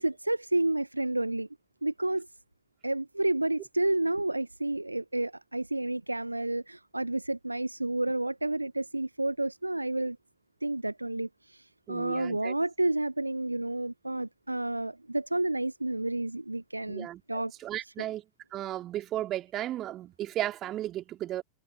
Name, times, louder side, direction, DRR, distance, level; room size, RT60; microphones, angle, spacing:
voice 1, 0.0-1.5 1.8-2.3 2.8-10.2 10.6-11.3 11.9-17.5 17.8-18.1, right 2 dB, 85° right, 0.9 m, -30 dB
voice 2, 11.9-12.5 16.9-18.2 18.5-21.4, right 13 dB, 30° right, 3.1 m, -35 dB
figure-of-eight pair, 90°, 0 cm